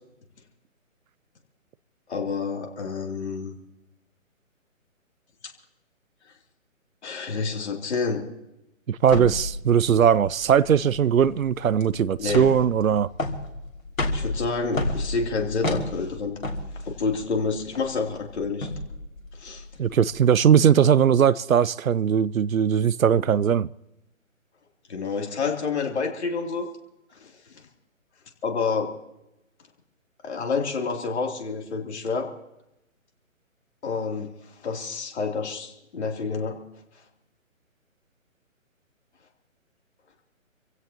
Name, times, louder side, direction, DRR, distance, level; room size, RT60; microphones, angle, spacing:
voice 1, 2.1-3.5 7.0-8.2 12.2-12.5 14.1-16.4 16.9-18.7 19.4-19.6 24.9-26.7 27.2-27.3 28.4-28.9 30.2-32.3 33.8-34.3 34.6-36.6, left 4 dB, 55° left, 3.0 m, -28 dB
voice 2, 8.9-13.1 19.8-23.7, right 8 dB, 80° right, 0.6 m, -20 dB
sound 1, 9.0-20.3, left 2 dB, 75° left, 2.9 m, -32 dB
27.5 x 16.0 x 2.9 m
figure-of-eight pair, 145°, 40 cm